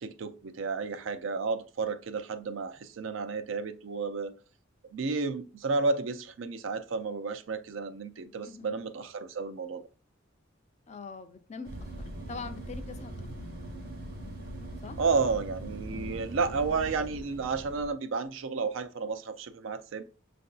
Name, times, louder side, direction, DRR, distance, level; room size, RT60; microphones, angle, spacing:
voice 1, 0.0-4.3 4.9-9.8 15.0-20.0, right 4 dB, 70° right, 0.4 m, -32 dB
voice 2, 8.4-8.8 10.9-11.9 12.3-13.1 14.8-15.0 15.9-16.3, left 4 dB, 35° left, 0.4 m, -43 dB
sound 1, 11.6-17.9, right 1 dB, 50° right, 0.9 m, -41 dB
6.5 x 2.6 x 2.3 m
head